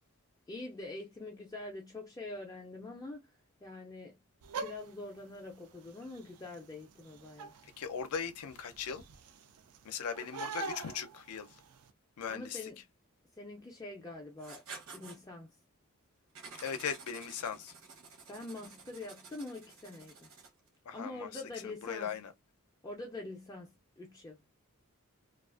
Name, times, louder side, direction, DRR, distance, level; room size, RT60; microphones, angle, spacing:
voice 1, 0.5-3.3 3.6-4.2 4.6-7.5 12.3-12.8 13.3-14.6 14.9-15.6 18.3-20.3 20.9-22.2 22.8-24.4, left 2 dB, 15° left, 0.3 m, -45 dB
sound 1, 4.4-11.9, right 4 dB, 85° right, 0.4 m, -46 dB
voice 2, 7.8-9.0 9.8-11.5 12.2-12.6 16.6-17.7 20.9-21.3 21.6-22.3, left 7 dB, 85° left, 0.5 m, -38 dB
Writing, 14.4-15.2 16.3-20.7, right 4 dB, 70° right, 0.8 m, -51 dB
2.4 x 2.3 x 2.3 m
head